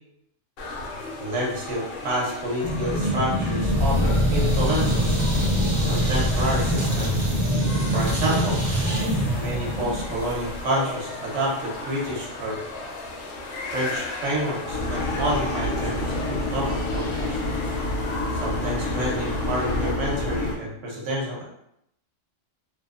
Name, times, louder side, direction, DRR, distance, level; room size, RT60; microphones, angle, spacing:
sound 1, 0.6-19.9, left 2 dB, 65° left, 0.6 m, -36 dB
voice 1, 1.2-5.2 5.9-7.3 7.9-8.6 9.3-12.6 13.7-16.0 16.3-17.4 18.4-21.4, right 1 dB, 70° right, -3 dB, 1.0 m, -28 dB
sound 2, 2.6-10.6, equal, 35° right, 0.5 m, -23 dB
sound 3, 14.7-20.6, left 1 dB, 80° left, 1.0 m, -28 dB
2.6 x 2.0 x 2.3 m, 0.79 s
omnidirectional pair, 1.3 m